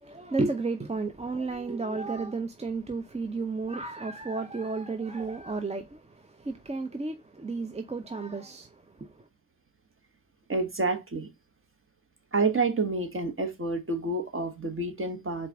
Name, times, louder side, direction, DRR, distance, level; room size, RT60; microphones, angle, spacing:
voice 1, 0.0-9.3, right 3 dB, 15° right, 0.6 m, -33 dB
voice 2, 10.5-11.3 12.3-15.5, right 3 dB, 30° right, 1.4 m, -29 dB
4.5 x 2.6 x 4.6 m
supercardioid pair, 50°, 39 cm